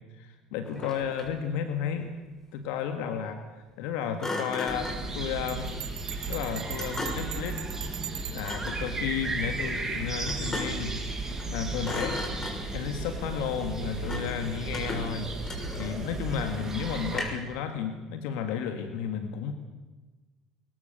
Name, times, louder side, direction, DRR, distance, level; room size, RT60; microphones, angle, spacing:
voice 1, 0.2-2.1 2.5-3.4 3.8-5.7 6.2-7.6 8.3-11.0 11.5-12.2 12.7-15.3 15.8-19.5, left 7 dB, 70° left, 7 dB, 1.8 m, -32 dB
Thump thud, 0.6-1.5 4.2-5.1 6.8-7.4 8.4-8.9 10.3-10.9 11.3-11.5 11.8-12.8 14.1-14.4 14.7-16.1 17.1-17.6, left 1 dB, 20° left, 6.2 m, -36 dB
sound 1, 4.7-17.2, right 2 dB, 20° right, 6.9 m, -35 dB
Bell, 5.5-8.7, right 13 dB, 70° right, 2.5 m, -40 dB
22.0 x 21.0 x 6.8 m, 1.2 s
hypercardioid pair, 65°, 2 cm